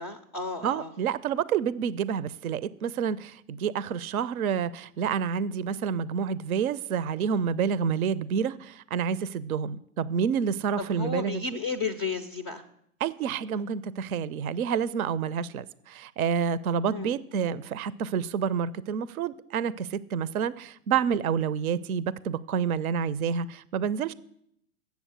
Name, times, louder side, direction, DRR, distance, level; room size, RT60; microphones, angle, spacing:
voice 1, 0.0-0.9 10.8-12.6 16.9-17.2, left 4 dB, 20° left, 7 dB, 0.3 m, -33 dB
voice 2, 0.6-11.4 13.0-24.1, right 7 dB, 75° right, 19 dB, 0.6 m, -28 dB
8.1 x 7.0 x 8.0 m, 0.72 s
hypercardioid pair, 115°, 44 cm